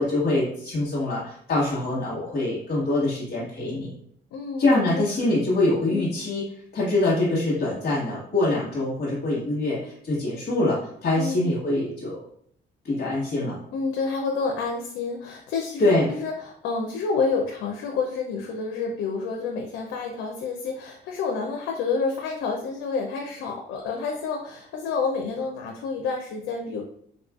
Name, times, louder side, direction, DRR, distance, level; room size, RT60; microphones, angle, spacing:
voice 1, 0.0-3.9 4.6-6.4 6.7-12.2 12.8-13.6 15.8-16.1, left 2 dB, 55° left, -8 dB, 1.1 m, -24 dB
voice 2, 4.3-5.0 5.9-6.1 11.1-11.5 13.7-26.8, left 4 dB, 85° left, 1 dB, 0.5 m, -29 dB
4.0 x 2.4 x 2.3 m, 0.64 s
cardioid pair, 90°, 20 cm